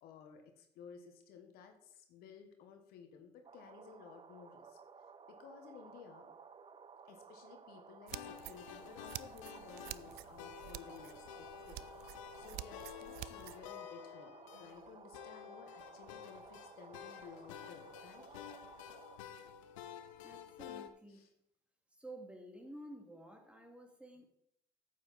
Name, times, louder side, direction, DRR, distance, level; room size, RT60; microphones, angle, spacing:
voice 1, 0.0-4.8 5.3-6.3 7.0-18.3 21.1-21.3, left 6 dB, 70° left, 6 dB, 1.3 m, -56 dB
sound 1, 3.4-19.2, right 5 dB, 35° right, 0.7 m, -57 dB
sound 2, 8.1-20.9, left 9 dB, 90° left, 0.7 m, -51 dB
sound 3, 8.1-13.6, right 17 dB, 75° right, 0.4 m, -50 dB
voice 2, 20.2-21.3 21.9-24.3, right 1 dB, 5° right, 2 dB, 2.5 m, -52 dB
8.8 x 8.1 x 4.1 m, 0.75 s
hypercardioid pair, 60°, 16 cm